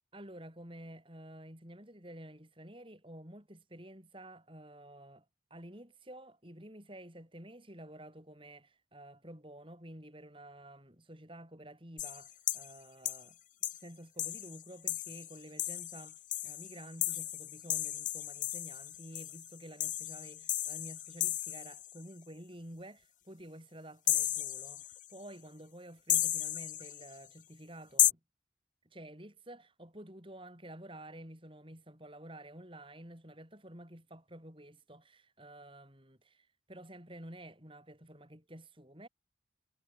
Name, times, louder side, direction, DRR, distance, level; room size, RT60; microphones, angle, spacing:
voice 1, 0.1-5.2 5.5-13.4 13.7-28.2 28.8-39.1, right 1 dB, 25° right, 6.5 m, -51 dB
sound 1, 12.0-12.7 13.0-13.2 13.6-13.8 14.2-22.0 24.1-25.1 26.1-27.1 28.0-28.1, left 13 dB, 40° left, 1.4 m, -34 dB
head